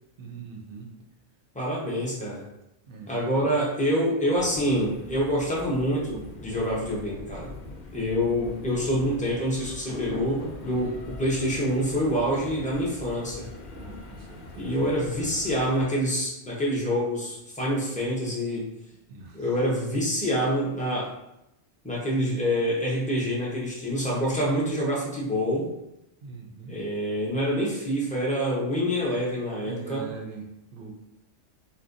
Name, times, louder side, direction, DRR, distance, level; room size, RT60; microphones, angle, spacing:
voice 1, 0.2-0.9 2.9-3.4 10.7-11.0 13.7-14.9 19.1-19.5 26.2-26.8 29.7-30.9, right 4 dB, 60° right, 1 dB, 0.6 m, -42 dB
voice 2, 1.5-2.5 3.1-7.5 7.9-13.5 14.6-18.7 19.3-21.1 21.8-25.7 26.7-30.1, equal, 10° left, -5 dB, 0.4 m, -26 dB
sound 1, 4.3-15.8, left 2 dB, 60° left, 0.6 m, -42 dB
4.2 x 2.1 x 2.5 m, 0.86 s
omnidirectional pair, 1.3 m